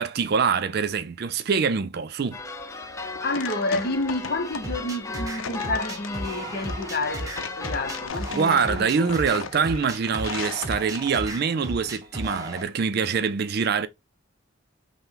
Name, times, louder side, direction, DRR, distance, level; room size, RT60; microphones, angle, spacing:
voice 1, 0.0-2.4 8.3-13.9, right 5 dB, 50° right, 0.4 m, -24 dB
sound 1, 2.3-8.1, left 3 dB, 15° left, 0.4 m, -36 dB
sound 2, 2.8-11.4, left 6 dB, 90° left, 0.6 m, -38 dB
voice 2, 3.2-9.4, left 2 dB, 50° left, 0.8 m, -30 dB
sound 3, 4.6-12.6, right 1 dB, 15° right, 0.8 m, -35 dB
5.5 x 2.1 x 3.8 m
head